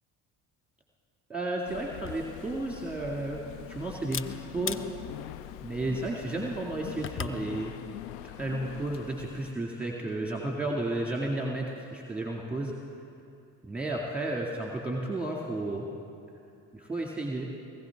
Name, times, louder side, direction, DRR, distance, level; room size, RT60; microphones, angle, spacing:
voice 1, 1.3-4.9 5.6-7.7 8.2-12.7 13.7-15.9 16.7-17.5, right 2 dB, 5° right, -2 dB, 2.0 m, -33 dB
sound 1, 1.6-9.5, left 12 dB, 85° left, 0.6 m, -43 dB
Camera, 1.9-7.4, left 7 dB, 30° left, 0.5 m, -42 dB
19.5 x 16.0 x 3.5 m, 2.6 s
hypercardioid pair, 60°, 45 cm